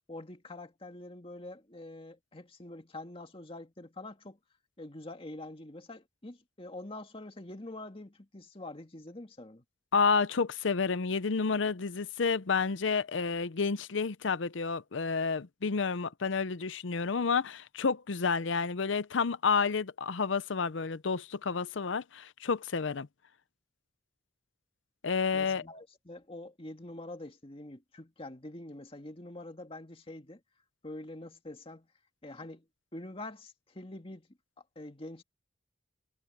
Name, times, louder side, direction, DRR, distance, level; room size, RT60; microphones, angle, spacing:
voice 1, 0.1-4.4 4.8-9.6 25.3-30.4 30.8-31.9 32.2-32.6 32.9-34.3 34.6-35.2, left 2 dB, 30° left, 2.1 m, -45 dB
voice 2, 9.9-23.1 25.0-25.6, left 5 dB, 70° left, 0.7 m, -30 dB
head